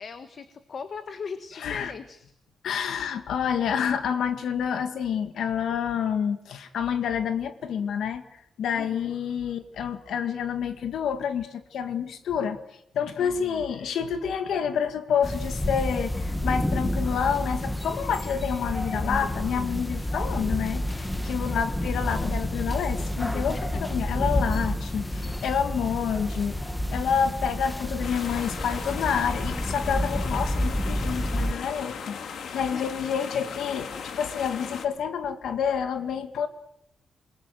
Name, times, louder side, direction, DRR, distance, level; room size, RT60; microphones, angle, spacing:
voice 1, 0.0-2.3 8.7-9.1 13.2-13.6 21.4-21.7 23.5-23.8 32.7-32.9, left 5 dB, 40° left, 10 dB, 1.5 m, -39 dB
voice 2, 1.6-1.9 2.6-8.2 8.6-12.6 12.9-32.2 32.5-36.5, left 7 dB, 85° left, 9 dB, 1.8 m, -28 dB
sound 1, 15.2-31.5, left 1 dB, 5° left, 1.2 m, -29 dB
Stream Waterfall Wales, 28.0-34.9, left 6 dB, 65° left, 2.3 m, -37 dB
28.0 x 21.5 x 7.9 m, 0.77 s
wide cardioid pair, 175°, 0 cm